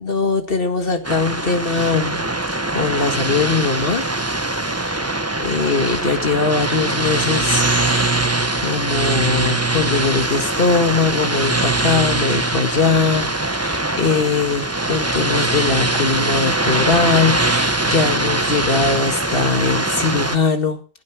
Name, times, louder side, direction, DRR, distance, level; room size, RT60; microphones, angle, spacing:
voice 1, 0.0-2.3 2.7-4.1 4.7-8.2 8.5-13.3 13.5-20.8, left 4 dB, 65° left, 7 dB, 2.2 m, -21 dB
sound 1, 1.0-20.4, right 2 dB, 15° right, 1.2 m, -22 dB
15.0 x 12.0 x 6.1 m, 0.38 s
omnidirectional pair, 1.0 m